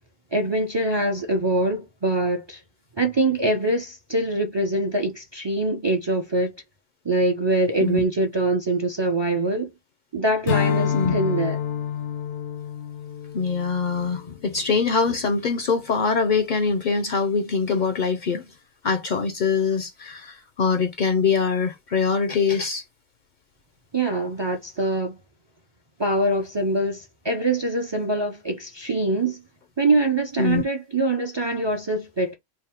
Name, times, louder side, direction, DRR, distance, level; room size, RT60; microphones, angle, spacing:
voice 1, 0.3-2.6 3.0-6.5 7.0-9.7 10.1-11.6 23.9-25.1 26.0-29.4 29.8-32.3, right 2 dB, 35° right, 0.4 m, -24 dB
Strum, 10.4-15.1, left 8 dB, 85° left, 0.9 m, -28 dB
voice 2, 13.3-18.5 18.8-22.8 30.4-30.6, left 5 dB, 55° left, 0.5 m, -23 dB
3.5 x 2.0 x 4.2 m
omnidirectional pair, 1.1 m